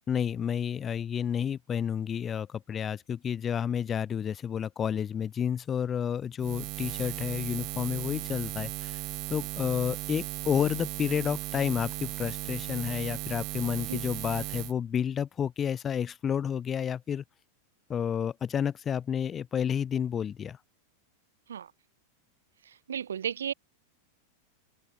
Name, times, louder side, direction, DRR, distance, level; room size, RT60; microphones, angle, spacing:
voice 1, 0.1-9.0 9.3-17.2 17.9-20.6, left 8 dB, 25° left, 3.6 m, -30 dB
Buzz, 6.4-14.7, right 21 dB, 40° right, 4.5 m, -36 dB
voice 2, 22.7-23.5, right 8 dB, 65° right, 7.3 m, -34 dB
open air
figure-of-eight pair, 90°, 0 cm